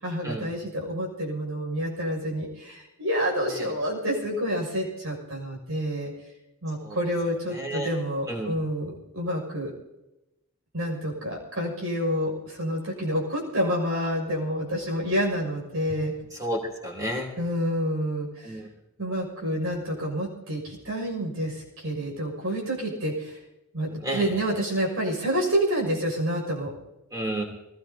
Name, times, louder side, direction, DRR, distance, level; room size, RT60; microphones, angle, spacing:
voice 1, 0.0-6.1 6.6-9.7 10.7-16.1 17.4-18.6 19.0-23.4 23.7-26.7, equal, 70° right, -2 dB, 6.4 m, -28 dB
voice 2, 7.5-7.9 8.3-8.5 16.4-17.3 18.4-18.7 24.0-24.2 27.1-27.4, right 1 dB, 15° right, 0 dB, 3.2 m, -30 dB
24.0 x 18.5 x 2.8 m, 0.92 s
head